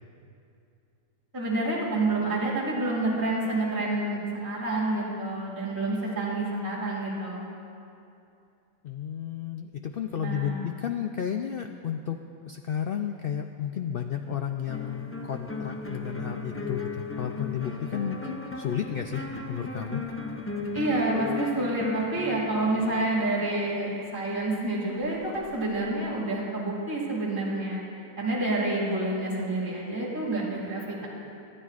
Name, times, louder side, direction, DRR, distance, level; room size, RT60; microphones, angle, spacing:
voice 1, 1.3-7.4 10.1-10.6 20.7-27.8 28.2-31.1, right 2 dB, 15° right, -6 dB, 2.3 m, -28 dB
voice 2, 8.8-20.0, left 8 dB, 90° left, 5 dB, 0.5 m, -32 dB
sound 1, 14.7-23.7 24.9-25.8, left 3 dB, 15° left, 0.4 m, -36 dB
24.5 x 11.0 x 2.4 m, 2.7 s
omnidirectional pair, 1.5 m